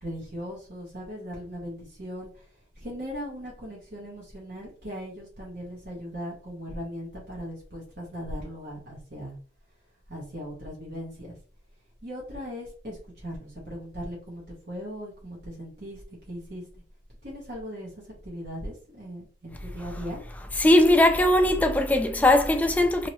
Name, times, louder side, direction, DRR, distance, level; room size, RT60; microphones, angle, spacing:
voice 1, 0.0-2.4 2.8-9.4 10.1-11.3 12.0-16.0 16.3-16.6 17.2-17.9 18.2-20.2, equal, 50° right, 1.1 m, -38 dB
voice 2, 20.6-23.1, left 1 dB, 10° left, 0.3 m, -19 dB
2.8 x 2.8 x 3.0 m
head